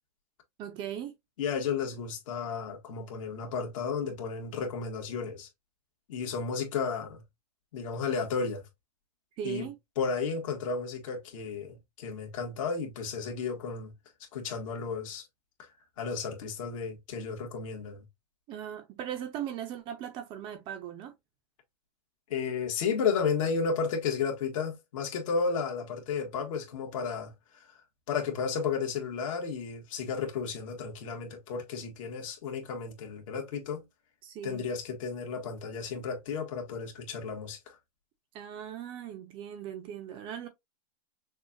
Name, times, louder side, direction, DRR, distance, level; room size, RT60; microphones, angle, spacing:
voice 1, 0.6-1.1 9.4-9.7 18.5-21.1 34.2-34.6 38.3-40.5, right 10 dB, 25° right, 0.7 m, -38 dB
voice 2, 1.4-5.5 6.1-7.2 7.7-8.6 9.4-9.7 10.0-13.9 14.3-15.3 15.6-15.7 16.0-18.0 22.3-27.3 27.6-27.8 28.1-33.8 34.4-37.8, left 5 dB, 50° left, 1.7 m, -33 dB
6.3 x 2.4 x 2.6 m
hypercardioid pair, 155°, 21 cm